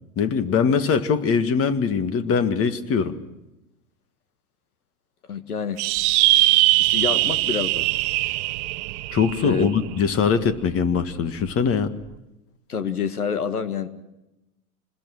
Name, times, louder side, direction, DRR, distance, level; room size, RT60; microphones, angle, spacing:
voice 1, 0.2-3.2 9.1-11.9, left 6 dB, 30° left, 11 dB, 1.8 m, -22 dB
voice 2, 5.3-5.8 6.8-7.9 9.4-9.7 12.7-13.9, left 6 dB, 90° left, 11 dB, 1.8 m, -27 dB
sound 1, 5.8-10.5, right 18 dB, 50° right, 0.9 m, -21 dB
26.5 x 20.5 x 6.4 m, 0.94 s
hypercardioid pair, 100°, 43 cm